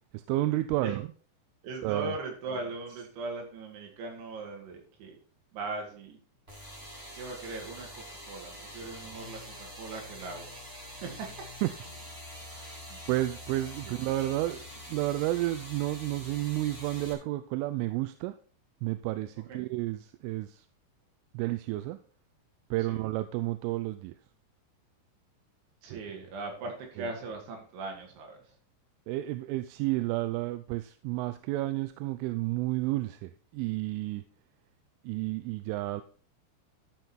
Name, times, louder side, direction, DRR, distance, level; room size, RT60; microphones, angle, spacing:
voice 1, 0.1-1.0 1.8-2.1 11.6-11.8 12.5-12.7 13.1-18.4 18.8-20.7 21.3-22.0 22.7-24.2 25.9-26.0 27.0-27.1 29.1-34.2 35.0-36.0, right 17 dB, 85° right, 11 dB, 3.0 m, -31 dB
voice 2, 1.6-5.2 5.5-6.2 7.2-10.6 11.0-11.4 12.9-13.1 13.9-14.0 19.5-19.7 22.8-23.0 25.8-28.5, right 3 dB, 70° right, 1 dB, 4.5 m, -39 dB
sound 1, 6.5-17.1, left 1 dB, 20° right, 1.5 m, -45 dB
12.0 x 6.2 x 4.4 m, 0.43 s
omnidirectional pair, 5.8 m